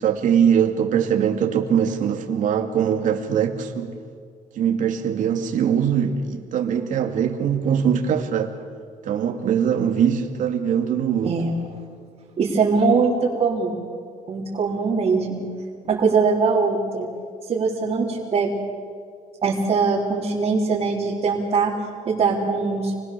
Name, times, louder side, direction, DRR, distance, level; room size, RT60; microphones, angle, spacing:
voice 1, 0.0-4.0 4.6-8.6 9.0-11.4, right 8 dB, 65° right, 2.7 m, -22 dB
voice 2, 12.4-13.8 14.3-15.4 15.9-17.1 17.5-18.5 19.4-21.7 22.1-22.9, right 4 dB, 45° right, 4.1 m, -21 dB
29.5 x 22.0 x 7.0 m
cardioid pair, 130°, 14 cm